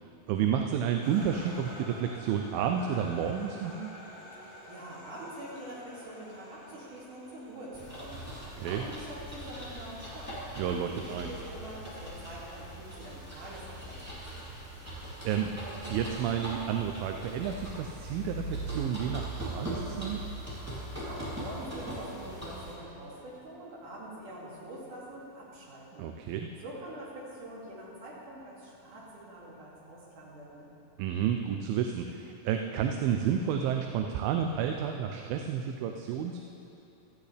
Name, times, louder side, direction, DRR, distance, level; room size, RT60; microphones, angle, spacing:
voice 1, 0.3-3.9 8.6-8.8 10.6-11.3 14.8-15.6 15.9-20.2 26.0-26.5 31.0-36.4, right 8 dB, 85° right, 4 dB, 2.4 m, -31 dB
sound 1, 1.0-11.0, left 1 dB, 75° left, 4.9 m, -50 dB
voice 2, 4.3-10.4 10.8-14.3 20.9-26.1 26.6-30.7, right 1 dB, 60° right, -6 dB, 4.0 m, -45 dB
sound 2, 7.7-22.7, right 1 dB, 5° right, 2.6 m, -40 dB
17.0 x 13.0 x 3.4 m, 2.8 s
omnidirectional pair, 4.1 m